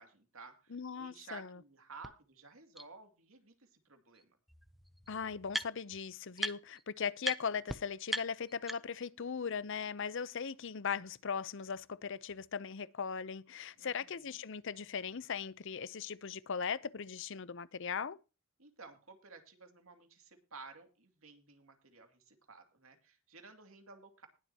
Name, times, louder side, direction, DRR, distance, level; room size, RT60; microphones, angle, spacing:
voice 1, 0.0-4.4 13.8-14.4 18.6-24.3, right 4 dB, 75° right, 2.5 m, -54 dB
voice 2, 0.7-1.6 5.1-18.2, left 6 dB, 60° left, 0.7 m, -39 dB
sound 1, 2.0-2.1 2.8-2.9 4.1-4.2 4.5-6.0 6.4-6.8 7.2-7.4 7.7-7.8 8.1-9.1, equal, ahead, 0.6 m, -39 dB
20.0 x 7.7 x 2.9 m
head